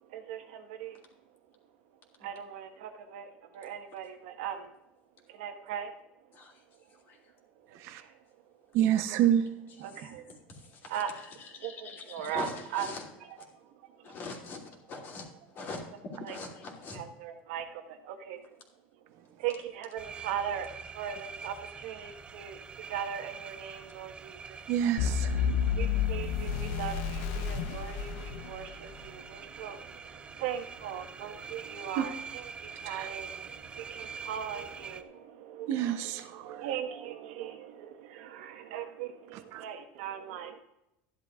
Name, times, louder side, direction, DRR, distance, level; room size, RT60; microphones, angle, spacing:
voice 1, 0.1-1.0 2.2-4.7 5.3-5.9 7.7-8.1 9.8-10.2 10.9-11.1 11.6-13.0 13.3-13.6 13.9-14.1 16.2-16.4 16.9-18.5 19.4-22.6 22.9-24.6 25.7-40.6, right 9 dB, 80° right, 1.4 m, -39 dB
voice 2, 8.7-9.5 9.8-9.9 24.7-25.5 31.9-32.0 32.9-33.1 35.7-36.6 39.3-39.6, right 10 dB, 55° right, 0.7 m, -28 dB
voice 3, 9.7-10.1 10.8-13.1 14.0-14.6 14.9-15.3 15.5-15.8 16.3-17.0, left 4 dB, 40° left, 2.9 m, -42 dB
sound 1, 20.0-35.0, right 5 dB, 20° right, 0.5 m, -45 dB
sound 2, 25.0-29.1, left 7 dB, 65° left, 0.8 m, -31 dB
14.0 x 11.0 x 2.4 m
supercardioid pair, 145°, 5 cm